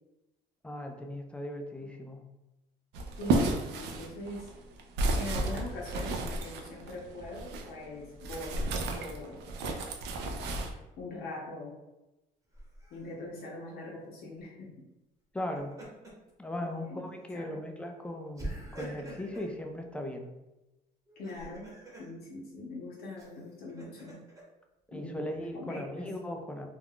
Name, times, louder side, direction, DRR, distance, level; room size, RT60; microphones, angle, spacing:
voice 1, 0.6-2.2 15.3-15.7 16.4-20.3 24.9-26.7, left 1 dB, 5° left, 3 dB, 0.4 m, -38 dB
sound 1, 2.9-7.7 8.2-10.7, right 2 dB, 80° right, 0.5 m, -32 dB
voice 2, 3.2-4.5 5.1-9.4 11.0-11.7 12.9-14.7 16.6-17.6 21.2-21.7 22.0-24.2 24.9-26.1, left 2 dB, 65° left, -3 dB, 0.7 m, -42 dB
Laughter, 12.5-13.1 15.4-16.3 16.7-16.9 18.4-19.5 21.1-22.1 23.2-24.4, right 1 dB, 20° right, 1.0 m, -44 dB
2.4 x 2.2 x 3.5 m, 0.99 s
cardioid pair, 110°, 17 cm